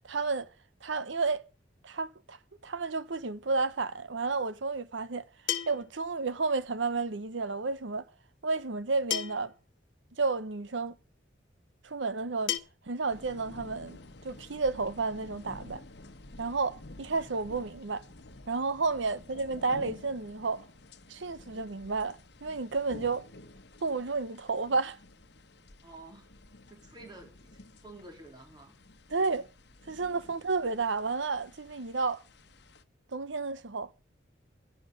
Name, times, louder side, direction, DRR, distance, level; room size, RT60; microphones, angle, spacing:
voice 1, 0.0-0.5 0.8-1.4 1.8-2.4 2.6-5.3 5.7-8.0 8.4-9.5 10.2-10.9 11.8-12.6 12.8-14.0 14.2-15.8 16.4-18.1 18.5-20.7 21.1-23.3 23.8-25.0 29.1-29.5 29.9-32.2 33.1-33.9, right 4 dB, 80° right, 0.9 m, -31 dB
sound 1, 3.8-3.9 5.5-6.0 7.5-7.6 9.1-9.6 10.8-10.9 12.5-12.6, left 10 dB, 85° left, 1.2 m, -32 dB
sound 2, 13.1-32.8, left 2 dB, 60° left, 1.2 m, -51 dB
voice 2, 25.8-26.3 26.7-28.8 30.1-30.4, right 2 dB, 25° right, 3.6 m, -51 dB
11.5 x 11.0 x 6.4 m
head